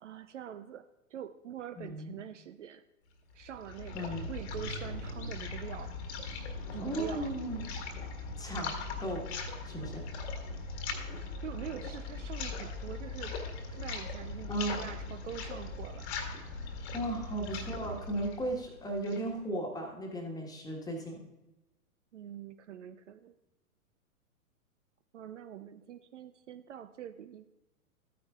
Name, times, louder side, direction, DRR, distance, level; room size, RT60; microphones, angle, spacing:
voice 1, 0.0-2.8 3.3-6.0 6.7-7.3 11.4-13.4 13.7-16.1 22.1-23.3 25.1-27.5, right 9 dB, 55° right, 11 dB, 0.5 m, -44 dB
voice 2, 1.8-2.2 3.9-4.3 6.8-7.6 8.4-9.3 9.6-10.1 14.5-14.8 16.9-21.2, right 1 dB, 10° left, 1 dB, 1.4 m, -36 dB
sound 1, 3.3-19.3, left 3 dB, 45° left, 1.6 m, -40 dB
14.0 x 9.3 x 2.4 m, 1.0 s
figure-of-eight pair, 105°, 44 cm